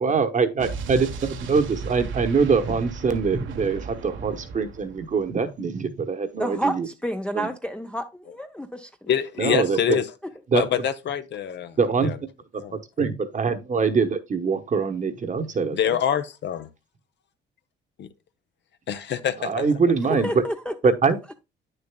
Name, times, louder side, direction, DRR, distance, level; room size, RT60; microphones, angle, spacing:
voice 1, 0.0-6.9 7.3-7.5 9.4-10.0 10.5-10.6 11.8-12.1 12.7-15.8 19.4-20.4 20.8-21.3, right 5 dB, 40° right, 1.0 m, -23 dB
Explosion, 0.6-5.4, right 5 dB, 75° right, 1.0 m, -36 dB
voice 2, 6.4-9.1 20.1-20.7, equal, 5° left, 0.5 m, -30 dB
voice 3, 9.1-10.0 10.5-12.2 12.6-12.8 15.7-16.7 18.0-18.1 18.9-19.6, left 9 dB, 60° left, 0.7 m, -26 dB
8.7 x 6.7 x 2.2 m
cardioid pair, 90°, 20 cm